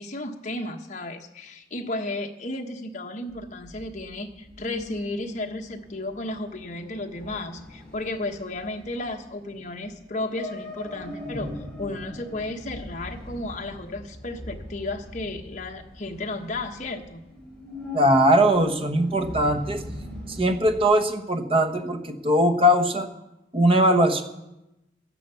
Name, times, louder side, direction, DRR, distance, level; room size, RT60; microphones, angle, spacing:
voice 1, 0.0-11.5 11.8-17.2, left 2 dB, 45° left, 3 dB, 1.3 m, -33 dB
sound 1, 3.3-20.8, left 1 dB, 5° left, 6.1 m, -41 dB
voice 2, 17.9-19.8 20.3-23.1 23.5-24.2, equal, 30° right, 8 dB, 1.1 m, -20 dB
14.0 x 10.5 x 6.9 m, 0.93 s
head